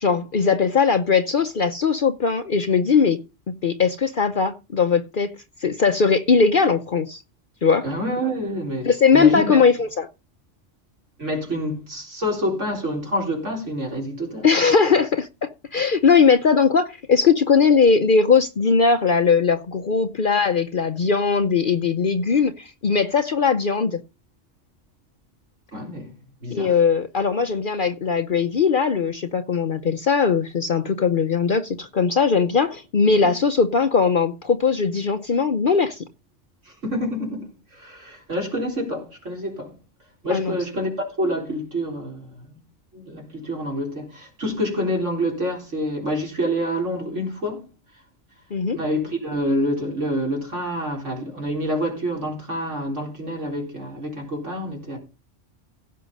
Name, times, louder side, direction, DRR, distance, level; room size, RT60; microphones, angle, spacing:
voice 1, 0.0-3.2 3.5-5.3 5.6-7.2 7.6-7.9 8.8-10.1 14.4-24.0 26.5-36.0 40.3-40.5 48.5-48.8, left 5 dB, 50° left, 0.8 m, -19 dB
voice 2, 7.8-9.6 11.2-14.5 25.7-26.2 26.4-26.7 33.2-33.3 36.7-39.7 40.2-42.6 42.9-47.7 48.7-55.0, equal, 75° right, 4.4 m, -27 dB
16.0 x 6.1 x 5.4 m
omnidirectional pair, 1.3 m